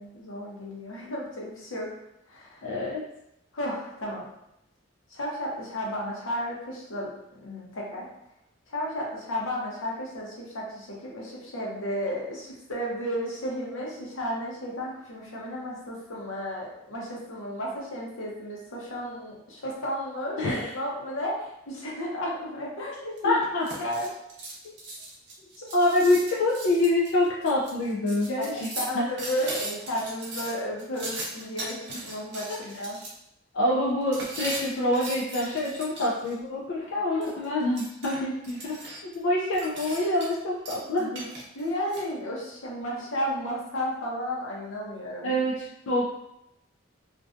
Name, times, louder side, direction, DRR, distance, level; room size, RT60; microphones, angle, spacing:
voice 1, 0.0-1.9 2.3-2.6 3.5-4.3 5.1-7.1 7.4-8.1 8.7-23.3 23.8-24.1 25.6-25.7 28.4-28.5 28.7-33.0 33.6-33.8 36.8-36.9 37.2-37.3 41.0-41.2 41.5-45.3, equal, 85° left, -3 dB, 0.7 m, -33 dB
voice 2, 2.6-3.0 20.4-20.7 23.2-23.6 25.7-28.7 28.9-29.1 33.5-38.8 39.1-41.1 45.2-46.1, left 1 dB, 65° left, -5 dB, 0.4 m, -26 dB
sound 1, 23.2-33.1 34.1-36.4 37.2-39.2 39.5-40.4 40.7-42.0, right 2 dB, 60° right, 0.6 m, -38 dB
2.5 x 2.2 x 2.4 m, 0.82 s
head